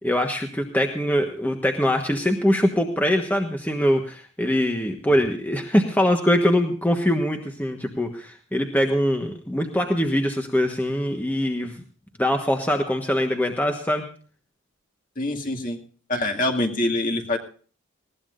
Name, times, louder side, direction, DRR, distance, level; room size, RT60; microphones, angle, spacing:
voice 1, 0.0-11.8 12.2-14.1, equal, 10° left, 3 dB, 1.3 m, -23 dB
voice 2, 15.2-15.8 16.1-17.4, left 1 dB, 40° left, 2 dB, 2.2 m, -25 dB
20.0 x 17.0 x 2.6 m, 0.42 s
head